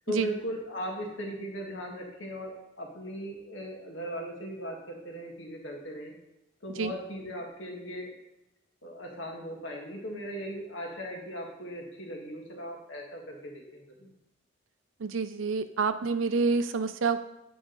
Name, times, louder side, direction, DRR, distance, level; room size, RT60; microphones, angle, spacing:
voice 1, 0.1-6.1 6.6-8.1 8.8-14.1, equal, 75° left, 0 dB, 1.6 m, -38 dB
voice 2, 15.0-17.2, right 4 dB, 80° right, 11 dB, 0.5 m, -28 dB
8.7 x 4.9 x 3.9 m, 0.89 s
head